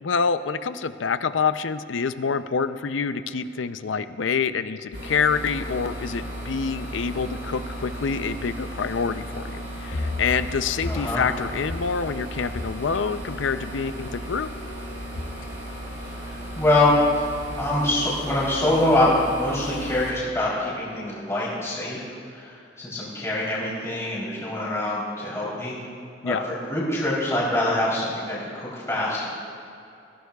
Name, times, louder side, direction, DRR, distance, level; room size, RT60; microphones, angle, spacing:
voice 1, 0.0-14.5 26.2-26.4, left 5 dB, 90° left, 12 dB, 0.5 m, -26 dB
sound 1, 4.9-20.1, equal, 60° right, 3.4 m, -36 dB
sound 2, 9.9-18.7, left 2 dB, 45° left, 0.8 m, -38 dB
voice 2, 10.9-11.2 16.2-17.3 17.5-22.0 22.3-25.8 26.2-29.3, left 1 dB, 15° left, -8 dB, 3.4 m, -24 dB
20.5 x 16.0 x 2.4 m, 2.7 s
head